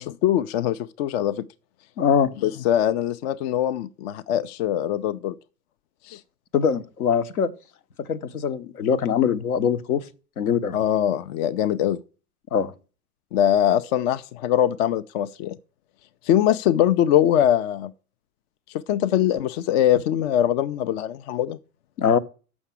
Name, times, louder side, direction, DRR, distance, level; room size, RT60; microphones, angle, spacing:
voice 1, 0.0-1.4 2.4-5.3 6.1-6.2 10.7-12.0 13.3-15.6 16.2-17.9 18.9-21.6, left 11 dB, 45° left, 0.5 m, -22 dB
voice 2, 2.0-2.3 6.5-7.5 8.0-10.0 10.4-10.8 12.5-12.7 22.0-22.2, left 7 dB, 70° left, 0.9 m, -22 dB
7.2 x 6.1 x 6.9 m
figure-of-eight pair, 85°, 46 cm